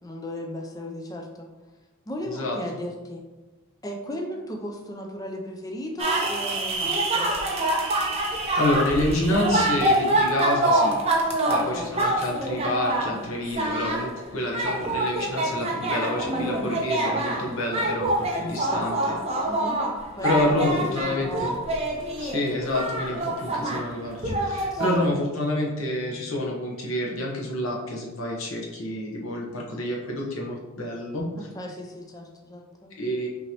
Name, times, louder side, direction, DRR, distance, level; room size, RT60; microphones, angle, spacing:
voice 1, 0.0-1.5 2.1-3.2 3.8-7.3 11.5-12.0 18.7-19.2 19.4-19.8 20.1-21.5 24.7-24.9 31.4-32.9, equal, 15° left, 1 dB, 0.4 m, -36 dB
voice 2, 2.3-2.6 8.6-11.0 11.4-19.1 20.2-21.6 22.2-31.3 33.0-33.3, left 1 dB, 70° left, -2 dB, 1.0 m, -28 dB
sound 1, 6.0-13.2 13.5-14.1 14.5-23.9 24.2-25.1, right 1 dB, 30° right, 0.6 m, -26 dB
5.7 x 2.9 x 2.9 m, 1.1 s
head